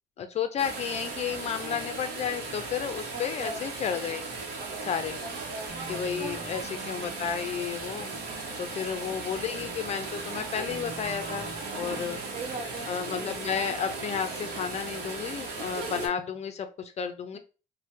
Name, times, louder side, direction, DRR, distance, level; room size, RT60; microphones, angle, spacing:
voice 1, 0.2-4.2 4.8-5.2 5.9-8.1 8.6-12.2 12.9-17.4, left 7 dB, 40° left, 8 dB, 0.4 m, -32 dB
sound 1, 0.6-16.1, right 3 dB, 90° right, 0.8 m, -37 dB
voice 2, 3.1-3.6 5.2-6.5 8.1-9.4 11.8-12.9 17.3-17.4, right 3 dB, 35° right, 0 dB, 1.1 m, -42 dB
sound 2, 5.7-15.7, right 4 dB, 20° right, 0.7 m, -48 dB
2.9 x 2.1 x 3.1 m, 0.33 s
cardioid pair, 110°, 17 cm